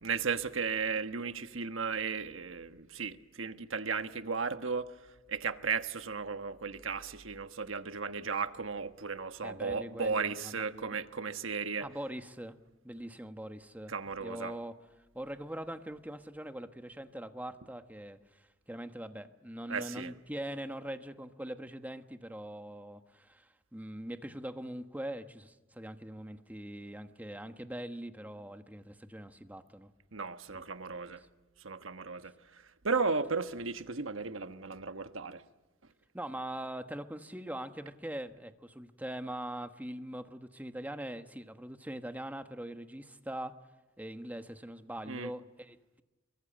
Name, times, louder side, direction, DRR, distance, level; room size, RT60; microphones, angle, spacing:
voice 1, 0.0-4.9 5.3-11.9 13.9-14.5 19.7-20.1 30.1-31.2 31.6-32.3 32.8-35.4 45.1-45.3, right 5 dB, 70° right, 1.3 m, -35 dB
voice 2, 9.4-11.0 11.8-12.5 12.8-13.9 14.2-14.8 15.1-29.9 30.5-30.6 30.9-31.1 36.1-43.6 44.0-46.0, right 1 dB, 10° right, 1.3 m, -42 dB
27.0 x 23.5 x 8.9 m
head